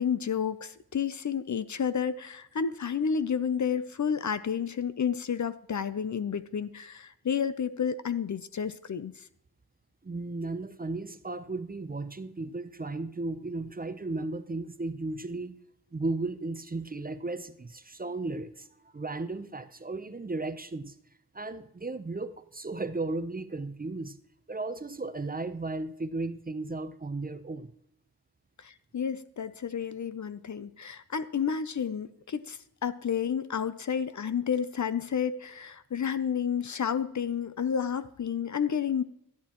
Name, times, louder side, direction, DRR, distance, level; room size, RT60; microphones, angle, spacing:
voice 1, 0.0-9.2 28.6-39.0, left 7 dB, 50° left, 14 dB, 0.6 m, -31 dB
voice 2, 10.0-15.6 15.9-18.7 18.9-20.9 21.3-24.2 24.5-27.7, right 3 dB, 25° right, 10 dB, 0.6 m, -35 dB
12.0 x 11.0 x 3.0 m, 0.76 s
wide cardioid pair, 70°, 38 cm